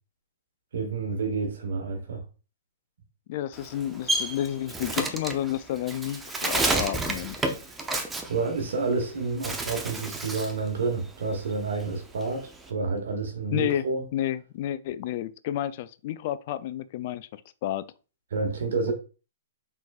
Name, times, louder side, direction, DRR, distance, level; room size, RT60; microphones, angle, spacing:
voice 1, 0.7-2.2 8.3-14.0 18.3-18.9, right 4 dB, 70° right, 1.2 m, -29 dB
voice 2, 3.3-7.4 13.5-13.8 14.1-17.9, left 12 dB, 50° left, 0.4 m, -31 dB
Bird, 3.5-9.0 9.3-10.6 11.0-12.7, right 2 dB, 10° right, 0.6 m, -30 dB
4.2 x 3.8 x 2.4 m
hypercardioid pair, 125°, 0 cm